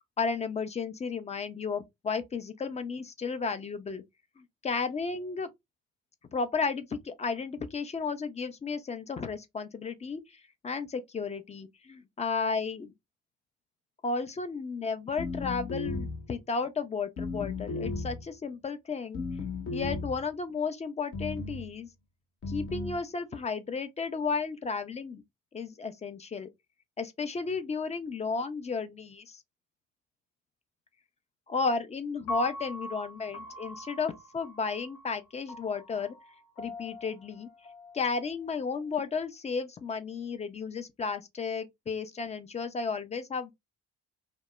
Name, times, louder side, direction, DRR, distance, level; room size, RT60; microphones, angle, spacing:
voice 1, 0.2-4.0 4.4-5.5 6.3-12.9 14.0-19.2 19.7-21.9 22.5-25.2 25.5-26.5 27.0-29.4 31.5-36.1 36.6-37.5 37.9-43.5, left 4 dB, 20° left, 0.3 m, -33 dB
sound 1, 15.2-16.3 17.2-18.3 19.1-20.2 21.1-21.7 22.4-23.0, left 3 dB, 35° left, 0.8 m, -35 dB
Piano, 32.3-38.5, equal, 75° left, 0.8 m, -42 dB
2.1 x 2.0 x 3.0 m
figure-of-eight pair, 45°, 38 cm